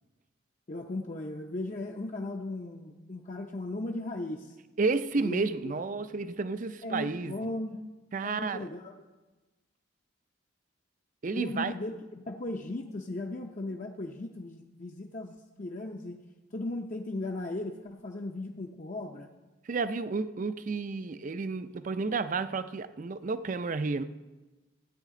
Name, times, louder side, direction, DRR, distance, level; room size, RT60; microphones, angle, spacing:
voice 1, 0.7-4.6 5.2-5.7 6.8-7.8 8.2-8.9 11.3-16.2 16.5-19.3, left 2 dB, 35° left, 0.6 m, -37 dB
voice 2, 4.8-7.4 8.1-8.7 11.2-11.7 19.7-24.0, right 4 dB, 40° right, 0.4 m, -31 dB
16.5 x 9.2 x 3.7 m
head